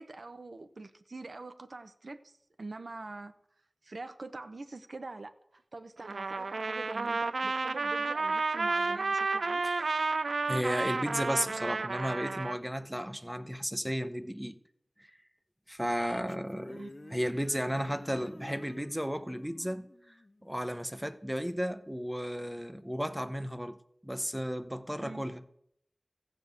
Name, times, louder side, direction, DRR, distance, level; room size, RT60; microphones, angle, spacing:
voice 1, 0.0-3.3 3.8-9.6 16.7-17.2 25.0-25.2, right 3 dB, 70° right, 0.7 m, -45 dB
Trumpet, 6.0-12.6, right 3 dB, 85° right, 0.4 m, -31 dB
voice 2, 10.5-14.6 15.7-16.8 17.1-20.2 20.4-23.8 24.0-25.4, equal, 5° right, 0.8 m, -34 dB
sound 1, 15.7-21.0, left 2 dB, 45° left, 0.5 m, -51 dB
14.5 x 5.3 x 8.1 m
wide cardioid pair, 50°, 0 cm